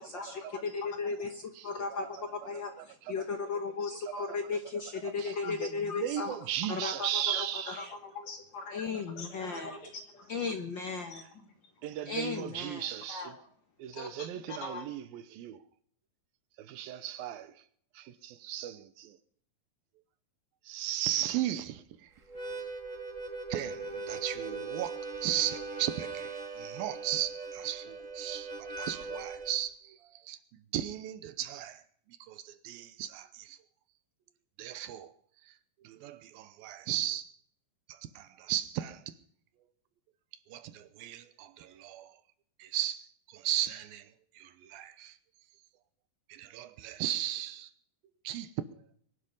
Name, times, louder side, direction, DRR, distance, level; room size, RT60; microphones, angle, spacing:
voice 1, 0.0-1.3 1.8-1.9 3.8-4.3 5.3-5.5 6.8-10.3 11.3-11.4 13.1-13.4 13.9-14.9, left 3 dB, 50° left, 3.6 m, -45 dB
voice 2, 0.7-1.3 1.6-2.1 2.3-6.3 6.7-7.1 7.5-7.9 8.7-9.8 10.3-11.3 12.1-12.8, left 4 dB, 90° left, 1.0 m, -35 dB
voice 3, 1.5-2.1 2.5-3.3 4.0-4.4 5.0-7.9 11.8-13.3 13.8-15.6 16.6-17.7 17.9-19.2 20.6-22.1 23.5-33.6 34.6-35.2 35.4-37.3 37.9-39.2 40.5-42.2 42.6-45.2 46.3-47.7 48.2-48.8, right 12 dB, 85° right, 2.7 m, -36 dB
Harmonica, 22.2-29.6, right 3 dB, 30° right, 1.7 m, -40 dB
23.0 x 11.5 x 5.5 m
omnidirectional pair, 4.2 m